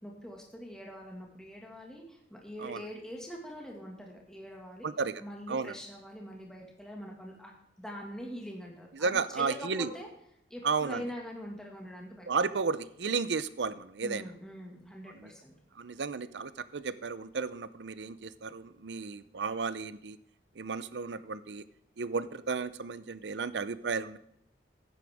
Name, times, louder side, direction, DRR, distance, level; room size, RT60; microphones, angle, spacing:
voice 1, 0.0-4.9 5.2-7.5 7.8-10.1 10.5-12.3 14.0-15.5, equal, 5° left, -1 dB, 1.9 m, -43 dB
voice 2, 4.8-5.2 5.5-5.7 8.9-9.9 10.6-11.0 12.3-14.3 15.1-15.3 15.8-20.2 20.6-21.6 22.0-24.2, right 4 dB, 85° right, 15 dB, 0.7 m, -33 dB
14.5 x 10.0 x 3.6 m, 0.75 s
head